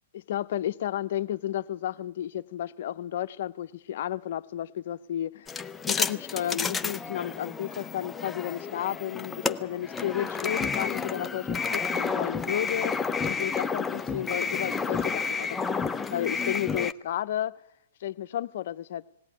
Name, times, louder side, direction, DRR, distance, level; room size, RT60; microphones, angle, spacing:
voice 1, 0.1-15.6 16.1-17.5 18.0-19.0, left 11 dB, 60° left, 0.8 m, -32 dB
sound 1, 5.5-16.9, left 5 dB, 15° left, 0.7 m, -31 dB
19.0 x 16.5 x 9.9 m
hypercardioid pair, 125°, 0 cm